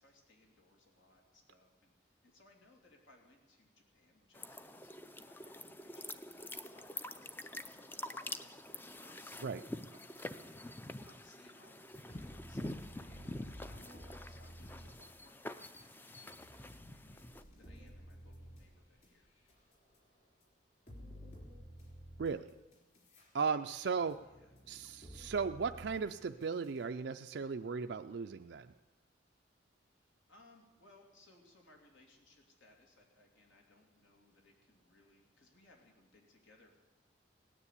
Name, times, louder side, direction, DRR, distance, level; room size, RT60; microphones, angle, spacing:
voice 1, 0.0-19.3 24.2-24.5 29.8-36.8, left 2 dB, 80° left, 1 dB, 3.0 m, -66 dB
sound 1, 4.3-17.4, left 1 dB, 10° left, 0.4 m, -47 dB
sound 2, 11.2-11.3 11.6-20.0 20.4-20.5 20.9-23.3 23.7-26.9, equal, 40° left, 3.7 m, -53 dB
voice 2, 23.3-24.2 24.7-28.7, right 5 dB, 65° right, 7 dB, 0.4 m, -36 dB
17.5 x 9.9 x 8.3 m, 1.1 s
head